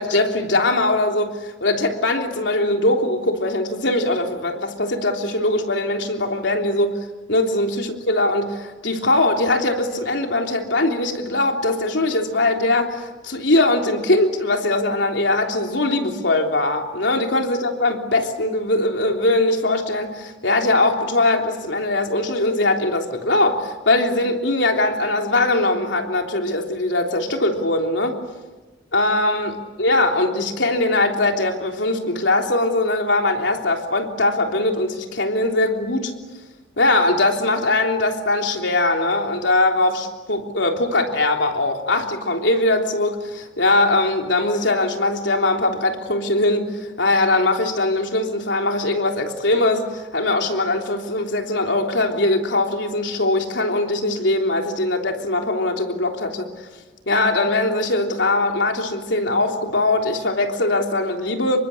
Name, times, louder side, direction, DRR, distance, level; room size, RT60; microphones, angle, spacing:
voice 1, 0.0-6.9 7.3-28.2 28.9-36.1 36.8-56.5 57.1-61.6, left 2 dB, 80° left, 3 dB, 3.4 m, -21 dB
28.5 x 24.0 x 8.6 m, 1.2 s
head